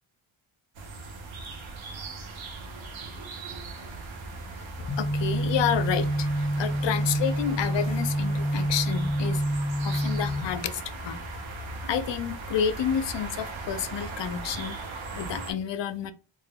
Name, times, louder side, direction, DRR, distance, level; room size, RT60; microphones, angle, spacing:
sound 1, 0.7-15.5, right 3 dB, 65° right, 0.8 m, -38 dB
voice 1, 4.8-9.4 9.8-11.2 11.8-14.8 15.1-16.1, left 8 dB, 60° left, 0.5 m, -30 dB
sound 2, 4.9-10.4, right 1 dB, 25° left, 0.8 m, -27 dB
3.6 x 2.6 x 2.2 m
cardioid pair, 80°, 50 cm